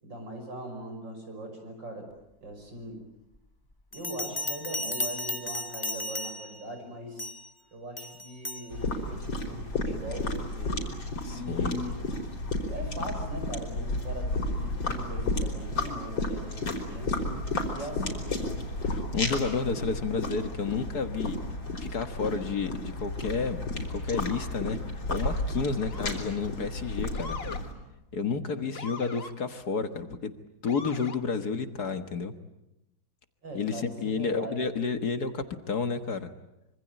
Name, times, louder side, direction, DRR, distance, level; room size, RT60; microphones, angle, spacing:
voice 1, 0.0-2.1 2.4-3.0 3.9-7.3 7.7-10.9 11.2-12.0 12.7-17.4 17.7-18.5 33.4-34.6, equal, 70° right, 5 dB, 6.6 m, -40 dB
Bell, 3.9-6.6 7.2-7.5 8.0-8.7, left 2 dB, 15° left, 0.8 m, -34 dB
sound 1, 8.7-27.7, left 2 dB, 80° left, 5.3 m, -32 dB
voice 2, 11.2-11.8 18.0-18.1 18.8-21.4 21.8-24.8 25.1-27.4 28.1-30.3 30.6-32.3 33.5-36.3, left 5 dB, 55° left, 8 dB, 1.9 m, -31 dB
Motor vehicle (road) / Siren, 24.1-24.4 25.8-26.4 27.1-27.6 28.7-29.3 30.7-31.2, left 5 dB, 35° left, 1.5 m, -41 dB
26.0 x 25.0 x 9.0 m, 0.89 s
omnidirectional pair, 2.1 m